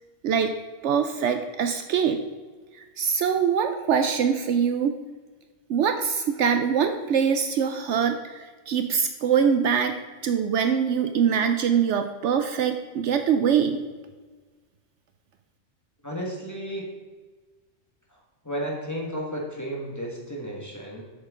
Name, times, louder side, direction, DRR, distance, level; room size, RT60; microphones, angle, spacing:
voice 1, 0.8-2.2 3.0-5.0 5.7-10.0 10.2-13.8, right 7 dB, 70° right, 7 dB, 0.8 m, -23 dB
voice 2, 16.0-16.9 18.4-21.0, equal, 15° left, -3 dB, 1.6 m, -33 dB
8.0 x 6.5 x 3.7 m, 1.4 s
omnidirectional pair, 1.3 m